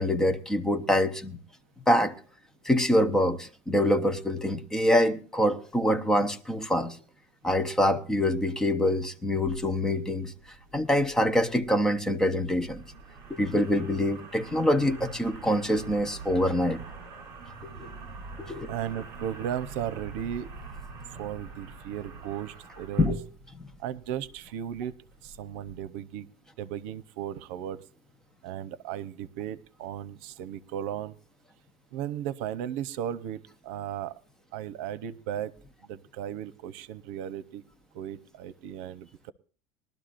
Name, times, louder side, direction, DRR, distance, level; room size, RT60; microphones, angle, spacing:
voice 1, 0.0-1.4 1.9-2.1 2.6-7.0 7.4-10.3 10.7-12.8 13.3-16.8 17.6-17.9 18.4-18.7 23.0-23.2 23.5-23.7, left 1 dB, 10° left, 0.8 m, -25 dB
sound 1, 9.2-25.8, right 4 dB, 40° right, 6.0 m, -45 dB
voice 2, 18.7-20.5 21.1-23.1 23.8-24.9 25.2-26.3 26.6-27.8 28.4-31.2 31.9-34.1 34.5-35.5 35.8-37.6 37.9-39.3, right 10 dB, 85° right, 0.7 m, -36 dB
21.0 x 12.0 x 2.5 m
cardioid pair, 160°, 7 cm